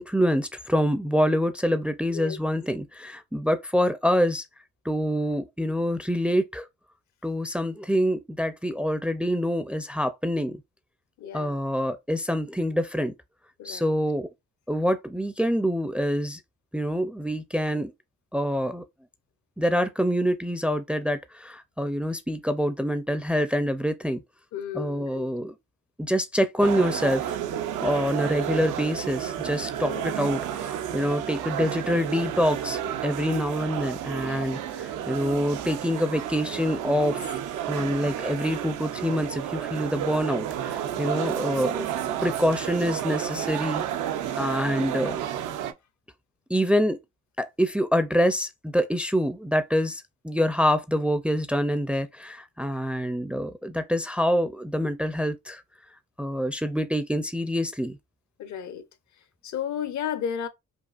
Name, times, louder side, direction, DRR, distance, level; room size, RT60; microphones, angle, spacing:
voice 1, 0.0-4.4 4.8-6.7 7.2-10.6 11.3-13.1 13.6-14.3 14.7-16.4 16.7-17.9 18.3-18.8 19.6-24.2 24.7-25.5 26.0-27.4 27.8-37.4 37.7-41.9 42.2-43.8 44.4-45.2 46.5-47.0 47.4-55.6 56.2-58.0, equal, 5° right, 0.4 m, -26 dB
voice 2, 11.2-11.6 13.6-13.9 24.5-25.3 29.9-30.1 41.0-41.4 58.4-58.8 59.4-60.5, left 8 dB, 70° left, 0.8 m, -33 dB
sound 1, 26.6-45.7, right 10 dB, 85° right, 0.6 m, -31 dB
5.3 x 2.4 x 2.4 m
cardioid pair, 90°, 30 cm